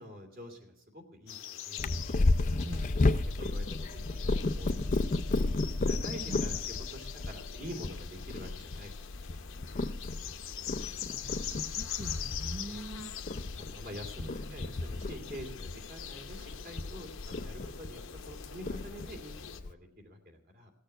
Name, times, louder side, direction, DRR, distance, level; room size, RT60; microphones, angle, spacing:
voice 1, 0.0-1.9 2.6-2.7 3.4-5.0 5.3-5.5 5.8-6.6 6.9-9.3 12.7-12.8 13.6-20.7, equal, 45° right, 3 dB, 2.6 m, -47 dB
sound 1, 1.3-19.6, left 10 dB, 65° left, 0.9 m, -43 dB
Purr, 1.8-19.7, left 2 dB, 35° left, 0.5 m, -33 dB
voice 2, 10.9-13.2 14.2-14.9, right 1 dB, 25° right, 6 dB, 0.6 m, -44 dB
17.5 x 6.6 x 9.1 m, 0.82 s
head